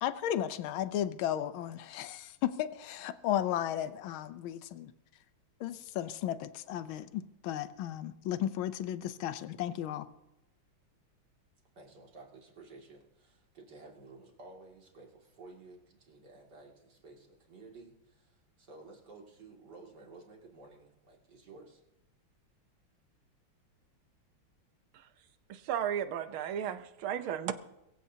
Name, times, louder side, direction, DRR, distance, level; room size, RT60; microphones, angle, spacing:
voice 1, 0.0-4.9 5.6-10.1, left 11 dB, 80° left, 1.5 m, -34 dB
voice 2, 11.7-21.8, right 3 dB, 55° right, 3.0 m, -53 dB
voice 3, 25.5-27.5, right 9 dB, 85° right, 1.7 m, -34 dB
22.0 x 15.5 x 2.8 m
omnidirectional pair, 2.2 m